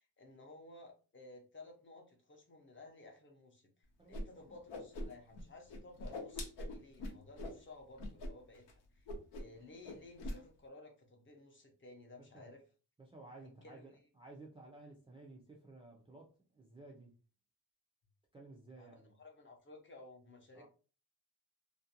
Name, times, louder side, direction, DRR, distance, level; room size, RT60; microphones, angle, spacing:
voice 1, 0.0-3.7 4.0-9.1 9.3-12.6 13.4-13.9 14.8-14.9 18.8-20.7, left 2 dB, 30° left, 0.6 m, -56 dB
voice 2, 4.0-4.6 12.2-12.6 13.0-17.1 18.3-19.1 20.5-20.7, right 2 dB, 15° right, 0.3 m, -55 dB
Whoosh swoosh swish, 4.1-4.2 4.5-5.4 5.7-7.6 8.0-8.3 8.5-8.7 9.1-9.6 9.8-10.4, left 1 dB, 85° left, 0.8 m, -42 dB
2.5 x 2.1 x 2.7 m
wide cardioid pair, 145°, 40 cm